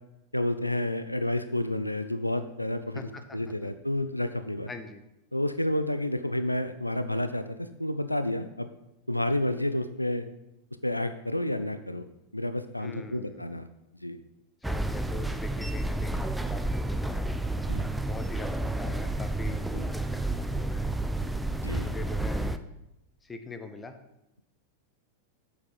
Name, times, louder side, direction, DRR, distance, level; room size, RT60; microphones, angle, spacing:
voice 1, 0.3-3.0 3.3-4.7 5.3-8.7 9.1-10.2 10.8-12.0 12.3-13.7 14.0-14.2 17.7-17.9 19.7-19.9 21.6-21.9, left 1 dB, 85° left, 10 dB, 0.5 m, -30 dB
voice 2, 2.9-3.7 4.7-5.0 12.8-13.6 14.6-17.3 18.0-19.7 19.9-20.9 21.7-22.6 23.2-24.0, left 3 dB, 15° left, 7 dB, 1.0 m, -43 dB
sound 1, 14.6-22.6, right 1 dB, 5° right, 0.5 m, -30 dB
8.6 x 6.9 x 5.6 m, 0.89 s
figure-of-eight pair, 90°, 0 cm